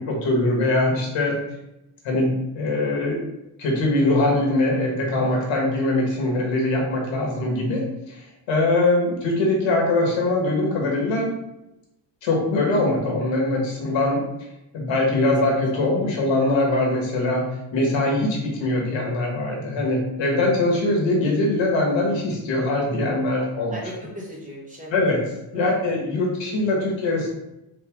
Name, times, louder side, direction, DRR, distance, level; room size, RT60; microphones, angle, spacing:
voice 1, 0.0-1.3 2.0-3.2 3.6-8.2 8.5-11.3 12.2-14.2 14.7-17.4 17.7-23.8 24.9-25.2 25.5-27.3, left 2 dB, 75° left, -2 dB, 1.6 m, -22 dB
voice 2, 15.7-16.1 20.2-20.4 23.7-25.0 25.5-25.6, equal, 15° right, -5 dB, 1.2 m, -38 dB
4.0 x 3.4 x 3.5 m, 0.92 s
cardioid pair, 180°, 45 cm